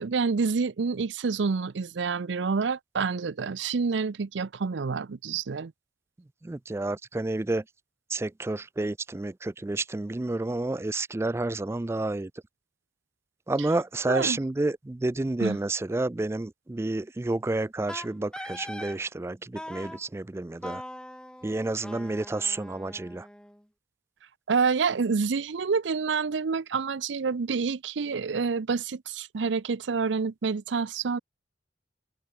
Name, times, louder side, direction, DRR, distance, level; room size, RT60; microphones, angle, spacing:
voice 1, 0.0-5.7 14.1-14.4 15.4-15.6 24.5-31.2, right 5 dB, 85° right, 0.6 m, -28 dB
voice 2, 6.4-7.6 8.1-12.3 13.5-20.8 21.4-23.3, right 2 dB, 15° right, 0.3 m, -30 dB
Wind instrument woodwind instrument, 17.9-19.0 19.6-20.0 20.6-23.6, left 1 dB, 5° left, 3.1 m, -41 dB
head